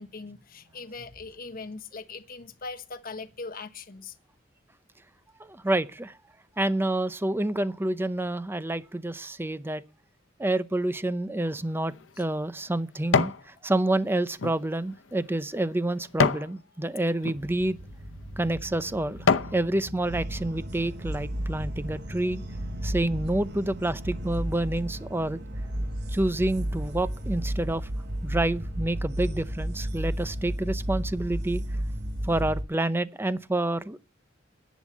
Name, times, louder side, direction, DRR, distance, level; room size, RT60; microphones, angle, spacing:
voice 1, 0.0-4.2 12.1-12.2, left 3 dB, 50° left, 1.3 m, -40 dB
voice 2, 5.4-6.2 6.6-9.8 10.4-17.8 18.4-22.4 22.8-25.4 26.1-27.9 28.2-31.6 32.2-34.0, right 1 dB, 10° right, 0.6 m, -28 dB
sound 1, 11.6-13.5 13.9-16.5 17.1-17.4 18.1-18.2 18.7-19.6 20.1-20.2, left 5 dB, 90° left, 0.8 m, -28 dB
sound 2, 17.3-24.3, equal, 90° right, 6.8 m, -42 dB
sound 3, 20.0-32.6, right 1 dB, 60° right, 1.4 m, -33 dB
11.0 x 8.4 x 7.3 m
head